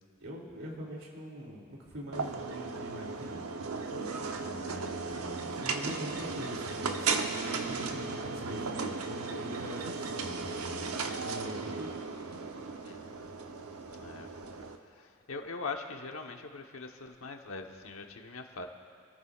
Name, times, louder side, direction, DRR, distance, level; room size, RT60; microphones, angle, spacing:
voice 1, 0.2-3.4 4.4-11.9, equal, 75° right, -2 dB, 2.9 m, -43 dB
sound 1, 2.1-14.8, right 4 dB, 90° right, 0.9 m, -36 dB
voice 2, 4.4-4.7 12.8-13.2 13.9-14.3 15.0-18.7, left 4 dB, 70° left, 4 dB, 1.2 m, -42 dB
26.5 x 14.0 x 2.5 m, 2.6 s
head